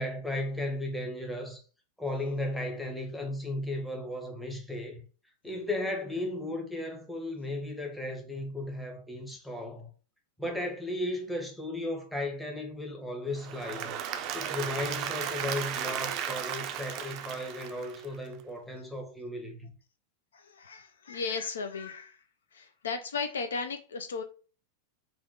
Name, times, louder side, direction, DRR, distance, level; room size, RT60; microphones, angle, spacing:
voice 1, 0.0-1.6 2.0-5.0 5.4-9.9 10.4-14.0 14.3-19.7, left 1 dB, 5° left, 0.8 m, -35 dB
Applause / Crowd, 13.4-18.3, right 9 dB, 40° right, 0.4 m, -35 dB
voice 2, 20.3-22.2 22.5-24.2, left 5 dB, 65° left, 0.4 m, -35 dB
3.4 x 2.2 x 3.9 m
figure-of-eight pair, 90°, 0 cm